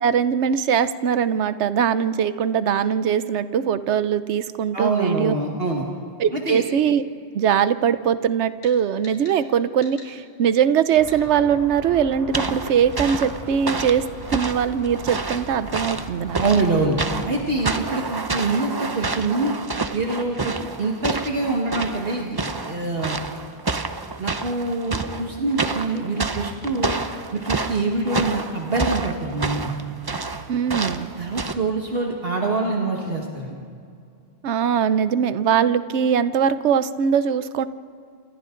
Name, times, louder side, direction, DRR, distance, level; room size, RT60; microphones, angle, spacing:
voice 1, 0.0-5.3 6.2-7.1 7.3-16.4 30.5-31.1 34.4-37.7, right 8 dB, 75° right, 13 dB, 1.0 m, -21 dB
voice 2, 4.7-5.8 6.3-6.6 16.3-17.0 17.2-19.5 19.9-23.2 23.7-23.8 24.2-26.9 27.3-29.8 31.2-33.6, right 3 dB, 55° right, 0 dB, 1.9 m, -25 dB
sound 1, 8.6-8.8 9.0-9.4 9.8-10.1 11.1-11.2, left 1 dB, 80° left, 4.9 m, -44 dB
sound 2, 10.9-17.4, equal, 55° left, 6.9 m, -39 dB
sound 3, 12.3-31.5, right 3 dB, 25° right, 0.6 m, -29 dB
28.5 x 26.5 x 3.8 m, 2.3 s
omnidirectional pair, 1.2 m